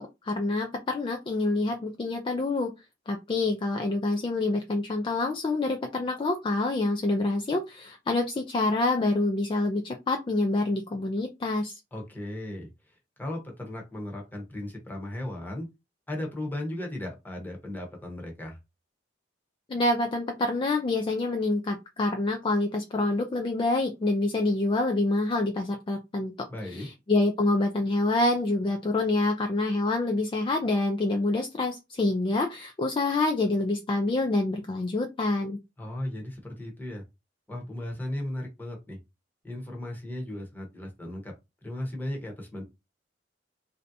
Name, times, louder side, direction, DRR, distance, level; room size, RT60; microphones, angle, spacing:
voice 1, 0.0-2.7 3.1-11.8 19.7-26.5 26.7-35.6, left 2 dB, 25° left, 3 dB, 0.3 m, -27 dB
voice 2, 11.9-15.7 16.1-18.6 26.5-26.9 35.8-37.0 37.5-39.0 39.4-41.3 41.6-42.6, left 1 dB, 10° left, 1 dB, 0.9 m, -36 dB
3.2 x 2.6 x 2.6 m, 0.24 s
head